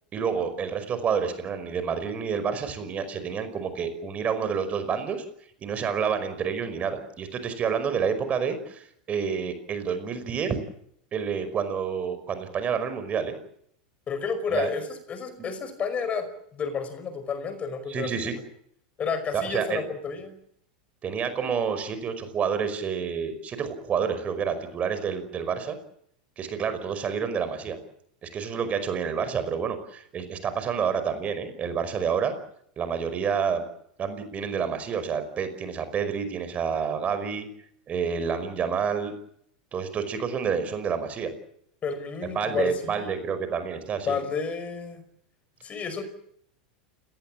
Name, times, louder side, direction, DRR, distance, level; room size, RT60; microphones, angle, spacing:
voice 1, 0.1-5.2 5.6-10.6 11.1-13.4 14.5-14.7 15.4-15.5 17.9-18.3 19.3-19.8 21.0-25.8 26.4-27.8 28.2-32.3 32.8-33.7 34.0-37.5 37.9-39.1 39.7-41.3 42.3-44.2, right 6 dB, 30° right, 11 dB, 5.3 m, -29 dB
voice 2, 14.1-16.3 16.5-18.1 19.0-20.4 41.8-43.3 44.1-45.0 45.6-46.0, left 5 dB, 30° left, 11 dB, 5.3 m, -31 dB
29.5 x 18.5 x 7.5 m, 0.70 s
hypercardioid pair, 115°, 5 cm